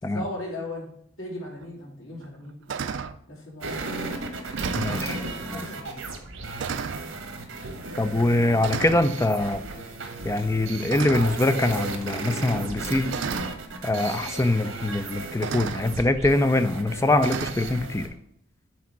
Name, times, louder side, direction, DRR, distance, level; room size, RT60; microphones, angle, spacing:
voice 1, 0.0-0.9 1.2-2.6 3.3-3.9 4.9-6.2, left 1 dB, 80° left, -3 dB, 2.8 m, -37 dB
sound 1, 1.6-1.7 2.2-2.4 2.7-3.2 4.0-4.1 4.4-5.1 6.1-6.3 6.6-7.1 8.0-8.3 8.6-9.1 10.9-11.5 12.6-12.7 13.1-13.6 14.8-14.9 15.4-15.9 17.2-17.5, right 6 dB, 60° right, 0.4 m, -32 dB
sound 2, 3.6-18.1, right 3 dB, 85° right, 1.3 m, -35 dB
voice 2, 4.7-5.2 5.5-5.6 8.0-9.6 10.2-13.1 13.8-18.1, left 2 dB, 15° left, 10 dB, 0.4 m, -23 dB
6.0 x 4.2 x 5.9 m, 0.72 s
head